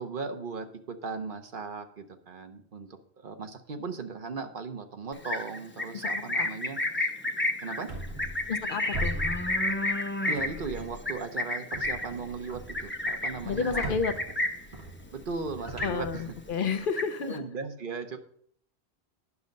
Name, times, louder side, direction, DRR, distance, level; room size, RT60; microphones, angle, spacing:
voice 1, 0.0-6.8 7.6-7.9 10.2-14.0 15.1-16.2 17.2-18.2, right 4 dB, 55° right, 7 dB, 1.0 m, -37 dB
Livestock farm animals working animals, 5.1-14.7 15.1-15.4 15.6-16.3 16.7-17.4, left 2 dB, 10° left, 0.7 m, -31 dB
voice 2, 6.1-6.5 8.5-9.2 13.4-14.1 15.8-17.4, left 5 dB, 60° left, 8 dB, 0.8 m, -31 dB
sound 1, 7.9-8.7 8.9-10.0 10.3-11.2 11.7-16.8, right 1 dB, 85° right, 1.9 m, -40 dB
9.7 x 6.3 x 5.3 m, 0.63 s
omnidirectional pair, 1.1 m